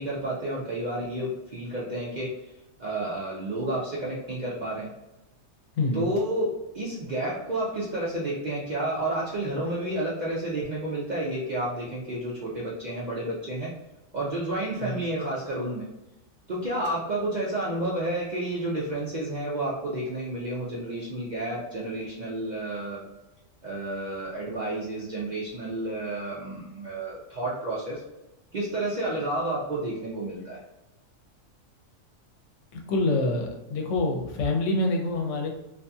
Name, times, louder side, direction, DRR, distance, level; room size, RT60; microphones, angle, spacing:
voice 1, 0.0-4.9 5.9-13.7 14.1-15.9 16.5-23.0 23.6-28.0 28.5-30.6, right 1 dB, 70° right, -6 dB, 0.4 m, -30 dB
voice 2, 5.8-6.1 14.8-15.0 32.7-35.5, left 2 dB, 70° left, 0 dB, 0.9 m, -26 dB
2.6 x 2.5 x 2.3 m, 0.98 s
omnidirectional pair, 1.4 m